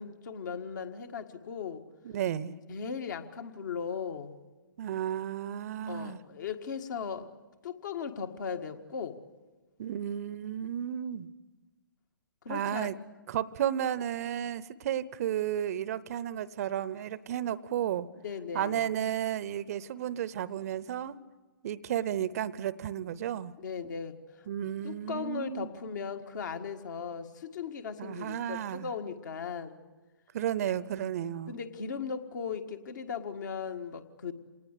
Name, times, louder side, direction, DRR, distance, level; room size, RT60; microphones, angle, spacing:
voice 1, 0.0-1.8 2.7-4.3 5.9-7.3 7.6-9.2 12.4-12.9 18.2-18.9 23.6-24.2 24.8-29.8 31.5-34.3, left 6 dB, 55° left, 7 dB, 1.7 m, -37 dB
voice 2, 2.0-2.6 4.8-6.2 9.8-11.3 12.5-12.9 13.3-18.1 18.5-21.1 21.6-23.5 24.5-25.7 28.0-28.9 30.3-31.5, right 10 dB, 45° right, 19 dB, 0.7 m, -33 dB
27.0 x 19.0 x 8.3 m, 1.2 s
figure-of-eight pair, 125°, 12 cm